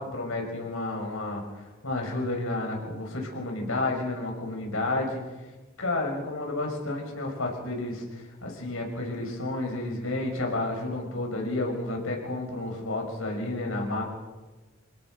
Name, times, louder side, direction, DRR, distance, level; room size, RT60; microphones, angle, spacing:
voice 1, 0.0-5.2 5.8-14.0, left 2 dB, 75° left, 1 dB, 6.3 m, -31 dB
27.5 x 17.5 x 6.5 m, 1.3 s
head